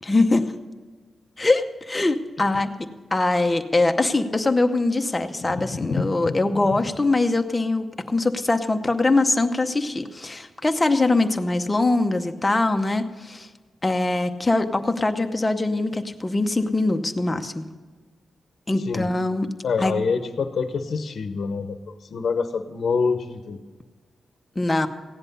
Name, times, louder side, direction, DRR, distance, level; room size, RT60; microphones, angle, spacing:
voice 1, 0.0-0.5 1.4-2.7 3.1-13.5 13.8-17.7 18.7-19.5 19.8-19.9 24.6-24.9, left 2 dB, 15° left, 6 dB, 0.7 m, -22 dB
voice 2, 5.4-6.4 6.7-6.8 18.9-19.1 19.6-23.6, left 5 dB, 55° left, 8 dB, 0.9 m, -26 dB
16.0 x 10.5 x 5.4 m, 1.4 s
wide cardioid pair, 175°, 0 cm